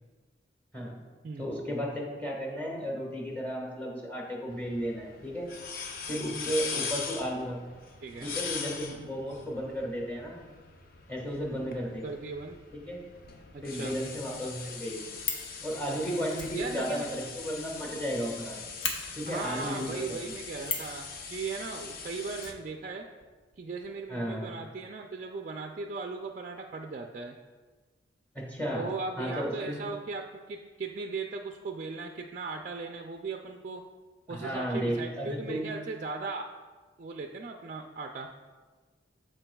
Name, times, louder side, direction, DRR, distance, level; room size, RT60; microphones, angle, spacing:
voice 1, 1.4-5.5 6.1-7.6 8.2-10.4 11.1-12.0 12.7-13.0 13.6-15.0 15.6-18.6 19.1-20.3 24.1-24.6 28.3-28.9 29.2-29.8 34.3-35.7, equal, 10° left, -2 dB, 1.4 m, -34 dB
sound 1, 4.5-22.5, left 5 dB, 50° left, 0.6 m, -41 dB
voice 2, 12.0-12.6 13.5-13.9 16.5-17.1 19.3-23.1 23.6-27.4 28.7-33.8 34.3-36.5 37.0-38.3, right 4 dB, 40° right, 3 dB, 0.3 m, -38 dB
Fire, 15.2-15.5 16.3-18.1 18.4-18.5 18.8-19.0 20.6-21.0 22.4-23.3 23.5-23.6 23.8-23.9, left 5 dB, 85° left, 1.0 m, -35 dB
13.5 x 4.5 x 2.3 m, 1.4 s
head